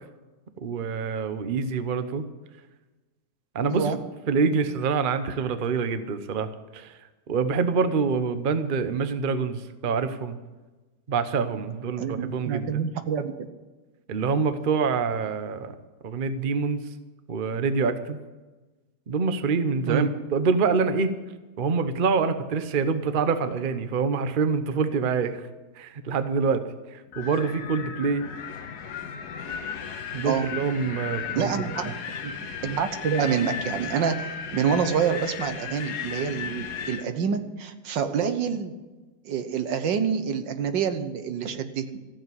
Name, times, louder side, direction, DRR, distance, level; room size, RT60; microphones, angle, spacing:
voice 1, 0.6-2.2 3.5-3.9 4.3-7.0 7.3-10.4 11.1-12.8 14.1-15.7 16.0-16.8 17.3-18.2 19.1-21.1 21.6-25.5 25.8-26.6 26.9-28.3 30.1-31.5, right 5 dB, 40° right, 10 dB, 0.7 m, -26 dB
voice 2, 3.6-4.0 12.0-13.5 19.9-20.1 30.2-30.5 31.3-31.9 32.2-32.3 32.6-38.7 39.2-41.9, right 7 dB, 80° right, 9 dB, 1.7 m, -27 dB
Wind, 27.1-37.1, left 7 dB, 65° left, 1.6 m, -35 dB
14.5 x 7.5 x 9.4 m, 1.2 s
omnidirectional pair, 1.9 m